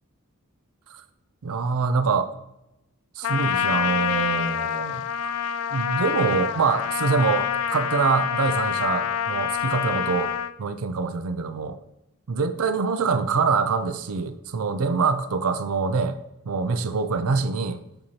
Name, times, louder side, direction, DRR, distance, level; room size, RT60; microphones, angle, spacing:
voice 1, 1.4-2.3 3.2-5.3 5.7-10.3 10.6-11.8 12.3-16.2 16.5-17.8, right 4 dB, 70° right, 10 dB, 0.5 m, -25 dB
Trumpet, 3.2-10.5, left 9 dB, 70° left, 0.3 m, -26 dB
7.7 x 2.8 x 4.4 m, 0.89 s
head